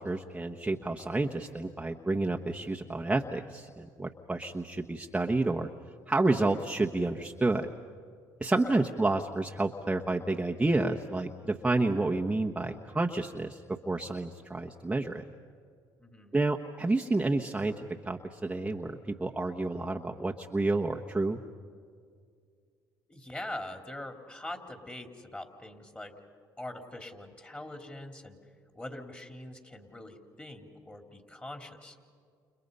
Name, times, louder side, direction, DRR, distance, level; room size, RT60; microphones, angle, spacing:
voice 1, 0.0-5.7 6.1-7.7 8.4-15.2 16.3-21.4, right 2 dB, 15° right, 1 dB, 1.2 m, -30 dB
voice 2, 8.5-8.9 16.0-16.3 23.1-26.1 26.6-28.4 28.7-32.0, left 1 dB, 15° left, 4 dB, 3.7 m, -43 dB
30.0 x 29.5 x 5.5 m, 2.1 s
supercardioid pair, 80°, 8 cm